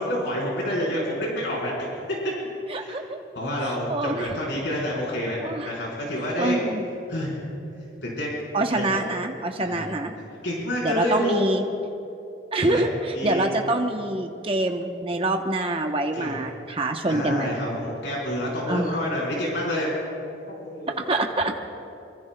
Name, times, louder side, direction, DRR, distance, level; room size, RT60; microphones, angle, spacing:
voice 1, 0.0-1.9 2.7-3.0 3.3-5.4 5.6-6.6 7.1-7.4 8.0-8.4 8.7-8.8 9.6-9.8 10.4-11.4 12.6-12.8 13.1-13.5 16.1-16.3 17.1-19.9 20.5-21.5, left 1 dB, 75° left, -4 dB, 4.3 m, -28 dB
voice 2, 2.7-3.2 3.6-4.3 5.4-5.7 6.4-6.8 8.5-10.1 10.8-11.7 12.5-17.5 18.7-19.0 21.1-21.5, right 2 dB, 30° right, 3 dB, 0.8 m, -26 dB
24.5 x 24.0 x 2.2 m, 2.7 s
head